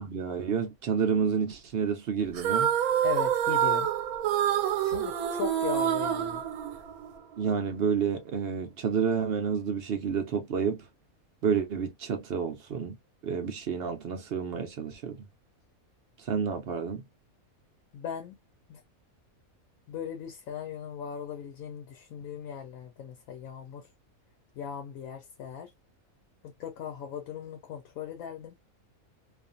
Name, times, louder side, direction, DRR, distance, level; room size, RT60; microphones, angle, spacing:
voice 1, 0.0-2.7 7.4-10.9 11.4-13.0 13.2-15.2 16.2-17.0, right 6 dB, 60° right, 0.7 m, -29 dB
sound 1, 2.3-7.2, right 9 dB, 85° right, 1.1 m, -27 dB
voice 2, 3.0-3.9 4.8-6.4 17.9-18.4 18.7-18.8 19.9-23.9 24.6-25.7 26.4-28.6, left 9 dB, 75° left, 1.0 m, -38 dB
2.5 x 2.4 x 2.5 m
omnidirectional pair, 1.5 m